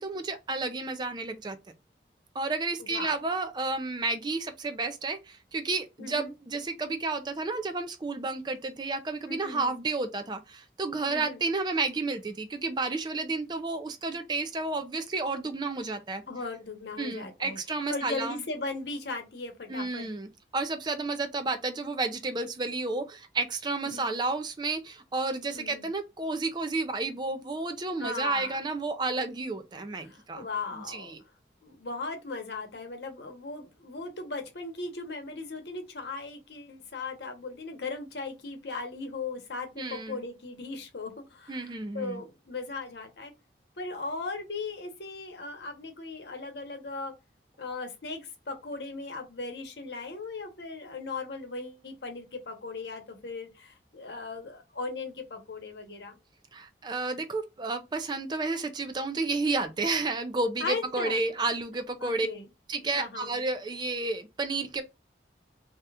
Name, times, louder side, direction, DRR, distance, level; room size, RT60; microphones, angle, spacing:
voice 1, 0.0-1.6 2.3-16.2 17.0-18.4 19.7-30.5 30.7-31.2 39.8-40.2 41.5-42.2 56.5-62.3 62.7-64.8, right 3 dB, 25° right, 0.4 m, -31 dB
voice 2, 2.8-3.2 6.0-6.3 9.3-9.8 11.1-11.4 16.3-17.6 17.9-20.1 23.8-24.1 25.5-25.9 28.0-28.6 30.0-31.1 31.6-43.3 43.8-47.1 47.6-56.1 60.6-61.2 62.0-62.5 63.0-63.3, left 3 dB, 75° left, 0.9 m, -38 dB
2.8 x 2.3 x 3.3 m
head